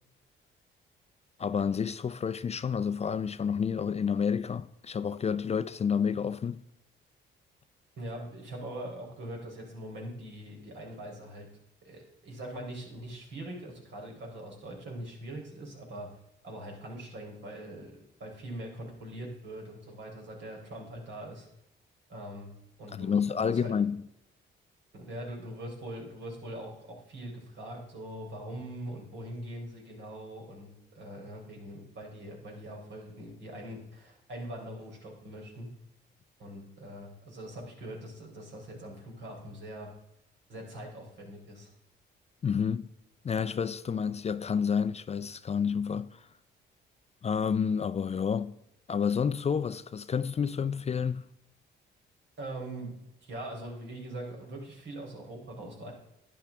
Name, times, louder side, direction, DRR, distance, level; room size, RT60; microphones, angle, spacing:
voice 1, 1.4-6.6 22.9-24.0 42.4-42.8 43.2-46.2 47.2-48.6 48.9-51.2, left 6 dB, 35° left, 0.4 m, -29 dB
voice 2, 8.0-11.5 11.8-16.1 16.4-21.5 22.1-22.5 22.8-23.7 24.9-35.7 36.4-39.9 40.5-41.7 52.4-52.9 53.2-55.9, right 1 dB, 65° right, 4.1 m, -42 dB
11.5 x 10.0 x 3.6 m
cardioid pair, 90°, 20 cm